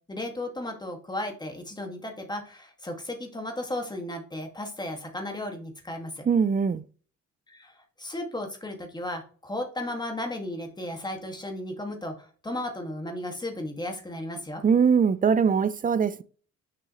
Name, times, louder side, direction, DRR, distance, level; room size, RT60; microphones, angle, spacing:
voice 1, 0.1-6.2 7.5-14.6, left 1 dB, 15° left, 1.9 m, -35 dB
voice 2, 6.3-6.8 14.6-16.2, right 6 dB, 30° right, 0.5 m, -22 dB
6.7 x 5.3 x 3.1 m
cardioid pair, 90°, 30 cm